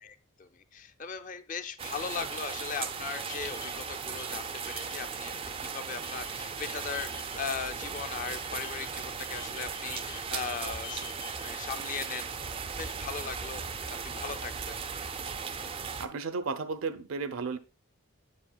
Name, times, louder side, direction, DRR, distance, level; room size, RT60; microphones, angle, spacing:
voice 1, 0.0-12.3 12.8-13.6 13.9-14.5, left 6 dB, 35° left, 0.4 m, -38 dB
sound 1, 1.8-16.1, right 6 dB, 25° right, 0.3 m, -37 dB
sound 2, 2.0-13.7, left 7 dB, 75° left, 1.2 m, -51 dB
voice 2, 16.0-17.6, right 4 dB, 70° right, 0.6 m, -33 dB
7.4 x 7.2 x 2.3 m
head